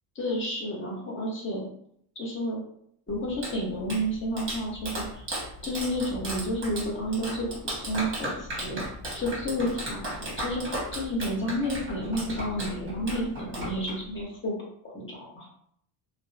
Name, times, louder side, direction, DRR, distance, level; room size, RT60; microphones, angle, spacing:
voice 1, 0.1-1.7 2.2-2.6 3.1-5.3 5.6-8.8 9.1-14.5 14.8-15.5, equal, 25° left, -2 dB, 0.7 m, -31 dB
Clapping, 3.1-14.2, right 1 dB, 25° right, 1.0 m, -36 dB
2.5 x 2.1 x 2.4 m, 0.69 s
cardioid pair, 125°, 47 cm